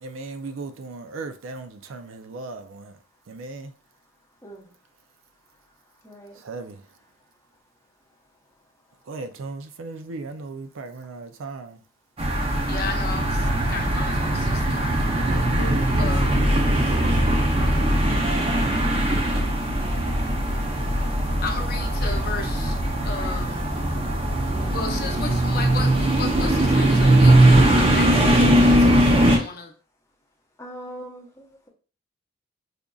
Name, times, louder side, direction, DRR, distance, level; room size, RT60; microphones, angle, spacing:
voice 1, 0.0-2.9 3.3-3.7 6.4-6.8 9.1-11.8 15.1-17.3, right 3 dB, 80° right, 0.4 m, -37 dB
voice 2, 6.0-6.4 18.3-18.8 30.6-31.7, right 1 dB, 15° left, 0.7 m, -41 dB
sound 1, 12.2-29.4, right 1 dB, 30° right, 0.6 m, -20 dB
voice 3, 12.7-15.0 16.0-16.3 21.4-22.8 23.0-23.6 24.7-29.7, left 4 dB, 50° left, 0.6 m, -34 dB
5.1 x 2.4 x 2.3 m
head